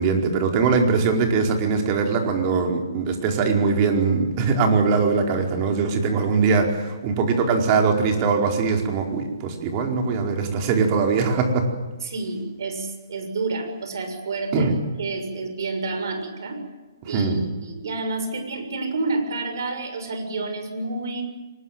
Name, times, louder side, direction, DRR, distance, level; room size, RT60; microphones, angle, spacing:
voice 1, 0.0-11.7 14.5-14.8 17.1-17.4, right 4 dB, 30° right, 3 dB, 4.6 m, -21 dB
voice 2, 12.0-14.7 15.0-16.6 17.1-21.2, right 3 dB, 65° right, 7 dB, 6.9 m, -29 dB
24.0 x 21.0 x 9.4 m, 1.3 s
hypercardioid pair, 145°, 2 cm